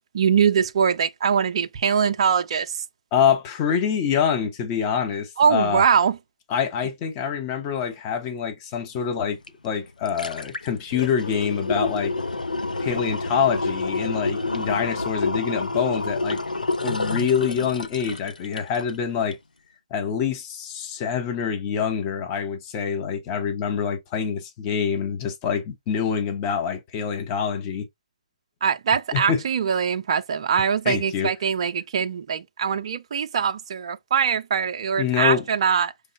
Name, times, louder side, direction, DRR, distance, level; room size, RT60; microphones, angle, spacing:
voice 1, 0.1-2.8 5.4-6.2 28.6-35.9, right 7 dB, 40° right, 0.5 m, -22 dB
voice 2, 3.1-5.8 6.5-9.4 9.6-12.1 12.8-16.4 16.8-19.4 19.9-27.9 29.1-29.4 30.8-31.3 35.0-35.4, left 7 dB, 25° left, 1.0 m, -25 dB
sound 1, 9.5-9.6 9.9-19.0 19.3-19.4, left 3 dB, 85° left, 0.7 m, -28 dB
5.3 x 3.2 x 2.6 m
figure-of-eight pair, 145°, 4 cm